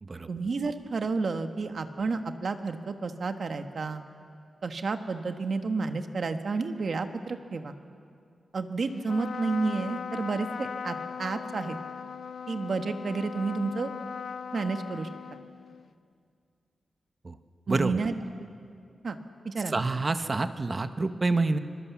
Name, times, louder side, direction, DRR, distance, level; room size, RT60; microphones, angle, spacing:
voice 1, 0.3-4.0 4.6-7.8 8.5-11.8 12.5-13.9 14.5-15.1 17.7-18.5 19.0-19.2 19.4-19.8, right 4 dB, 55° right, 7 dB, 1.4 m, -31 dB
Trumpet, 9.0-15.9, left 6 dB, 75° left, 0.7 m, -39 dB
voice 2, 17.7-18.0 19.7-21.6, right 3 dB, 30° right, 9 dB, 1.0 m, -27 dB
26.5 x 22.5 x 7.3 m, 2.3 s
wide cardioid pair, 145°, 0 cm